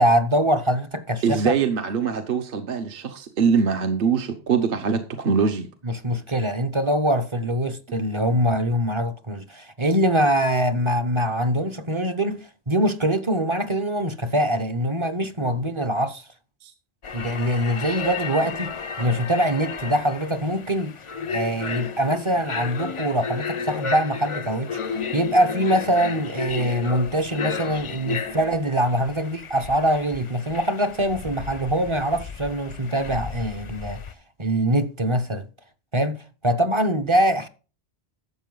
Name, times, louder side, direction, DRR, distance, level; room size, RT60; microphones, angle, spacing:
voice 1, 0.0-1.5 5.8-16.2 17.1-20.9 21.3-34.0 34.4-35.5 35.9-37.5, equal, 30° right, 0.7 m, -23 dB
voice 2, 1.2-5.7 7.9-8.0 16.6-16.7, right 6 dB, 55° right, 1.1 m, -23 dB
sound 1, 17.0-34.1, left 5 dB, 40° left, 0.4 m, -33 dB
12.0 x 7.4 x 3.9 m
omnidirectional pair, 1.1 m